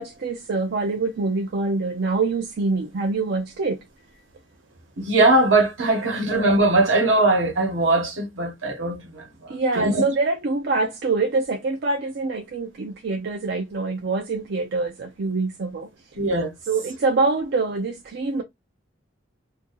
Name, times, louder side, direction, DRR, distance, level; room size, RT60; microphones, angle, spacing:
voice 1, 0.0-3.8 9.5-15.9 16.7-18.4, right 3 dB, 60° right, 0.5 m, -25 dB
voice 2, 5.0-10.0 16.1-16.5, right 2 dB, 75° right, 1.2 m, -20 dB
2.6 x 2.6 x 3.7 m
head